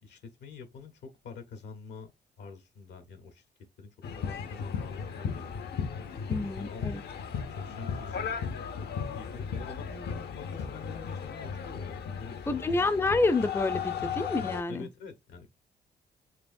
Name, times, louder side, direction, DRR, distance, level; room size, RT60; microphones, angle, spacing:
voice 1, 0.0-2.1 2.4-3.4 3.8-5.7 6.4-7.1 7.3-8.3 9.1-12.9 14.7-15.5, left 5 dB, 85° left, 1.0 m, -46 dB
sound 1, 4.0-14.6, left 6 dB, 70° left, 0.6 m, -36 dB
voice 2, 6.3-7.0 12.5-14.9, left 3 dB, 15° left, 0.4 m, -28 dB
4.4 x 2.9 x 2.6 m
cardioid pair, 75°, 17 cm